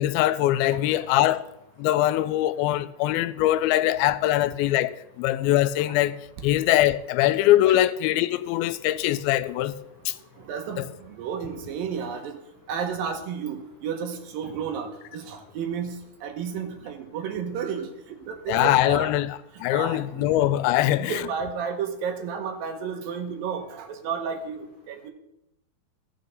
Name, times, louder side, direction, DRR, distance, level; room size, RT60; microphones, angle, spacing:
voice 1, 0.0-1.4 1.8-9.8 10.1-10.2 10.8-10.9 18.5-21.2, left 14 dB, 90° left, 2.4 m, -22 dB
voice 2, 0.7-1.0 7.7-7.8 10.4-12.4 12.7-19.1 19.7-20.5 20.8-25.1, right 6 dB, 75° right, 2.8 m, -32 dB
16.0 x 6.7 x 4.0 m
omnidirectional pair, 4.2 m